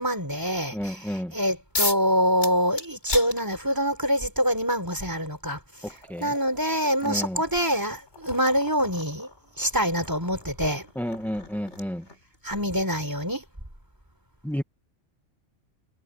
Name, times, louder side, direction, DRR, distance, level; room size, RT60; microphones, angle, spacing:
voice 1, 0.0-1.0 1.3-5.6 6.2-9.3 9.6-10.8 12.4-13.4, equal, 15° right, 4.1 m, -25 dB
voice 2, 0.7-1.3 5.8-6.3 7.0-7.4 10.9-12.0 14.4-14.6, equal, ahead, 1.4 m, -31 dB
sound 1, 1.7-2.1 2.4-4.0 5.1-5.2 5.7-12.4, left 2 dB, 70° left, 3.9 m, -36 dB
omnidirectional pair, 1.2 m